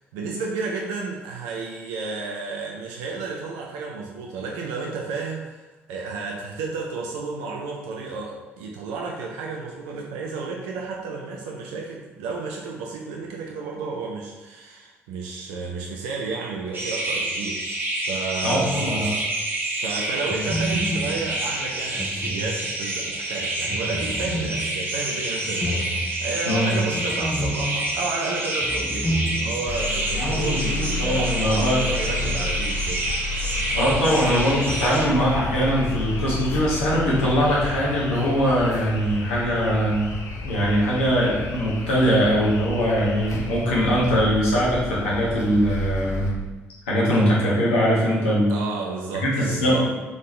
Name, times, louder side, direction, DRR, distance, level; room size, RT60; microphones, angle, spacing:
voice 1, 0.1-5.6 5.9-19.3 19.7-33.0 48.5-49.9, right 4 dB, 70° right, -1 dB, 0.5 m, -32 dB
sound 1, 16.7-35.1, right 2 dB, 30° right, 1.0 m, -28 dB
voice 2, 18.4-19.1 26.4-26.8 30.1-31.8 33.7-40.1 40.4-46.3 46.9-48.6 49.2-49.9, equal, 75° left, -6 dB, 1.2 m, -21 dB
sound 2, 18.7-19.5 20.3-23.0 23.7-29.9 30.2-30.3 32.0-32.4, equal, 10° left, 0.5 m, -31 dB
sound 3, 29.7-46.3, left 3 dB, 50° left, 0.6 m, -31 dB
3.9 x 3.6 x 3.1 m, 1.2 s
figure-of-eight pair, 45°, 7 cm